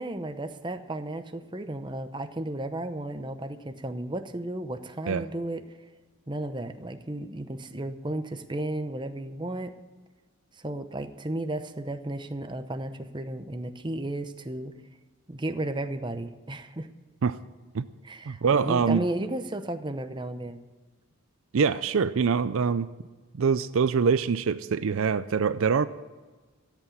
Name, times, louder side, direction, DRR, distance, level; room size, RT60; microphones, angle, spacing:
voice 1, 0.0-5.6 6.3-9.7 10.5-14.7 15.3-16.9 18.0-20.6, right 1 dB, 20° right, 8 dB, 0.7 m, -34 dB
voice 2, 18.3-19.0 21.5-22.9 23.3-25.9, right 5 dB, 65° right, 14 dB, 0.4 m, -24 dB
14.0 x 8.3 x 8.8 m, 1.3 s
head